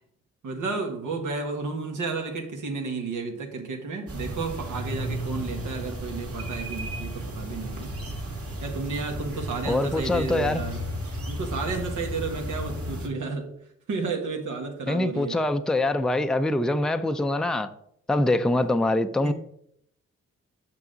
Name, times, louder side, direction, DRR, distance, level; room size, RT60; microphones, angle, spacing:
voice 1, 0.4-7.9 8.6-10.8 11.3-13.5 13.9-15.4 19.2-19.3, right 4 dB, 75° right, 1.5 m, -32 dB
sound 1, 4.1-13.1, equal, 50° right, 2.0 m, -34 dB
voice 2, 9.7-10.6 14.9-17.7 18.1-19.3, left 2 dB, ahead, 0.5 m, -24 dB
6.1 x 5.9 x 3.9 m
cardioid pair, 55°, 31 cm